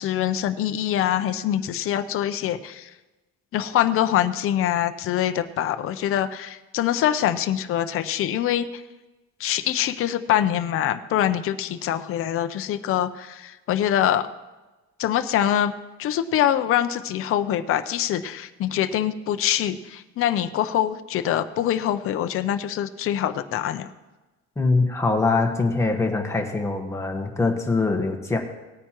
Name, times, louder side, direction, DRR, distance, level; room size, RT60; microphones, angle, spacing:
voice 1, 0.0-2.9 3.5-8.8 9.4-14.3 15.0-15.7 16.0-23.9, left 11 dB, 50° left, 9 dB, 0.6 m, -24 dB
voice 2, 24.6-28.4, left 3 dB, 10° left, 2 dB, 1.2 m, -23 dB
18.0 x 9.2 x 3.0 m, 1.1 s
cardioid pair, 155°, 29 cm